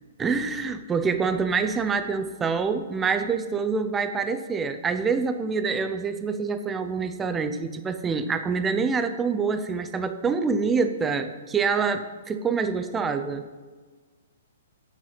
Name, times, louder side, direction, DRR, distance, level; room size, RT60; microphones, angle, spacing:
voice 1, 0.2-13.5, right 5 dB, 10° right, 10 dB, 0.5 m, -26 dB
9.4 x 7.3 x 5.7 m, 1.4 s
hypercardioid pair, 160°, 0 cm